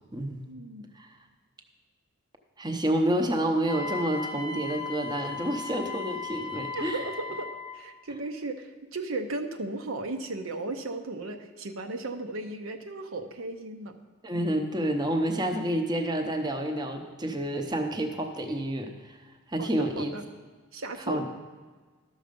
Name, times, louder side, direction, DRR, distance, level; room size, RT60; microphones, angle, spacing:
voice 1, 0.5-0.9 6.7-13.9 19.6-20.3 20.7-21.3, right 2 dB, 75° right, 5 dB, 0.8 m, -36 dB
voice 2, 2.6-7.1 14.2-19.2 19.5-20.1 21.1-21.3, right 1 dB, 20° right, 4 dB, 0.7 m, -29 dB
Wind instrument woodwind instrument, 3.7-7.8, left 4 dB, 20° left, 0.5 m, -37 dB
12.0 x 6.4 x 5.2 m, 1.4 s
head